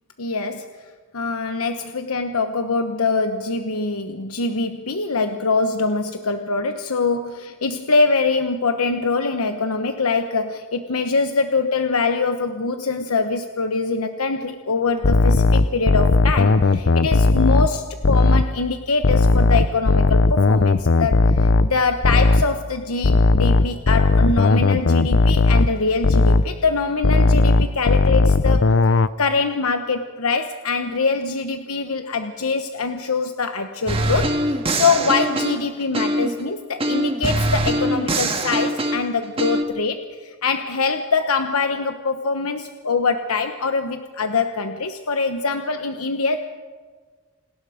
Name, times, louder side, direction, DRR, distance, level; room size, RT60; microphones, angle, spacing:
voice 1, 0.2-28.7 29.2-46.4, left 4 dB, 85° left, 6 dB, 1.1 m, -23 dB
sound 1, 15.0-18.5 19.0-22.6 23.0-26.6 27.0-29.1, left 3 dB, 55° left, 0.6 m, -16 dB
sound 2, 33.9-36.4 36.8-39.6, right 1 dB, 25° right, 1.8 m, -23 dB
29.0 x 19.0 x 5.1 m, 1.5 s
head